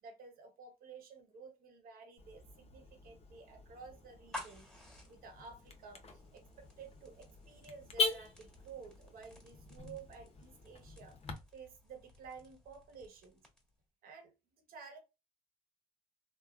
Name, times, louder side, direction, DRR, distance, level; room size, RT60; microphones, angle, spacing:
voice 1, 0.0-4.7 5.1-11.2 11.5-13.4 14.0-14.3 14.7-15.0, right 5 dB, 80° right, 1.0 m, -53 dB
Car / Alarm, 2.2-11.3, left 4 dB, 45° left, 0.7 m, -43 dB
sound 1, 4.1-13.8, left 1 dB, 5° left, 1.6 m, -54 dB
3.1 x 2.1 x 2.4 m
cardioid pair, 85°, 15 cm